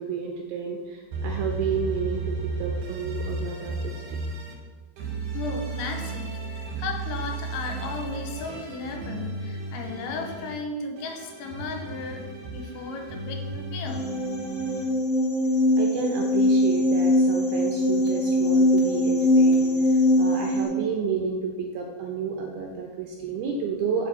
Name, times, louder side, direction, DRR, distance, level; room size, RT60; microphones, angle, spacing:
voice 1, 0.0-4.0 15.8-24.1, right 6 dB, 75° right, 1 dB, 2.4 m, -31 dB
sound 1, 1.1-4.5 5.0-10.5 11.0-14.8, right 3 dB, 60° right, 2.2 m, -34 dB
voice 2, 5.3-12.2 12.5-14.1, left 4 dB, 80° left, 3 dB, 3.5 m, -35 dB
sound 2, 13.9-20.6, left 1 dB, 60° left, 3.1 m, -21 dB
7.8 x 5.5 x 6.9 m, 1.3 s
omnidirectional pair, 5.3 m